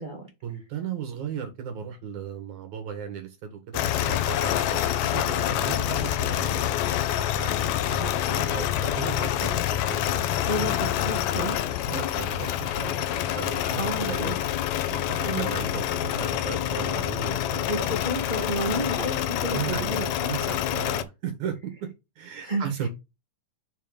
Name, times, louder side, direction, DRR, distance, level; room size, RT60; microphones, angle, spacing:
voice 1, 0.4-6.8 7.4-10.2 11.9-14.3 14.9-17.9 19.5-21.9 22.2-22.9, right 7 dB, 70° right, 2.7 m, -36 dB
sound 1, 3.7-21.0, left 11 dB, 75° left, 1.8 m, -27 dB
voice 2, 10.4-11.7 13.8-14.4 15.2-15.5 17.7-20.3 22.4-22.7, right 1 dB, 50° right, 0.5 m, -31 dB
6.8 x 3.7 x 5.1 m
omnidirectional pair, 3.7 m